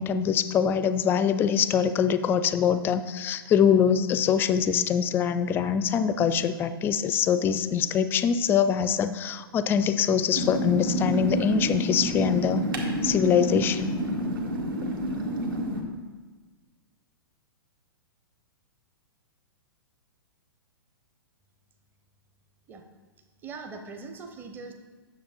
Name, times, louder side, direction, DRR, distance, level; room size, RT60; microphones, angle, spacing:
voice 1, 0.0-12.7 13.0-14.0, left 7 dB, 15° left, 13 dB, 0.4 m, -24 dB
sound 1, 10.3-15.8, equal, 65° right, 1.6 m, -29 dB
voice 2, 23.4-24.7, right 4 dB, 15° right, 5 dB, 0.7 m, -41 dB
9.2 x 6.8 x 4.2 m, 1.4 s
figure-of-eight pair, 110°, 13 cm